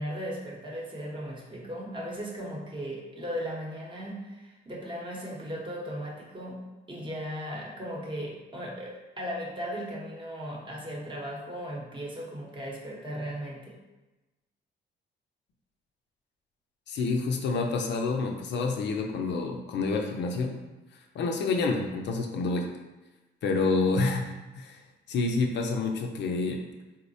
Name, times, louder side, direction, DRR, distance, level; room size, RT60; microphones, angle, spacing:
voice 1, 0.0-6.6 6.9-13.8, equal, 25° right, -3 dB, 0.8 m, -37 dB
voice 2, 16.9-20.6 21.1-22.7 23.4-24.8 25.1-26.7, left 3 dB, 65° left, 2 dB, 0.4 m, -28 dB
3.9 x 2.1 x 2.6 m, 1.1 s
cardioid pair, 90°, 20 cm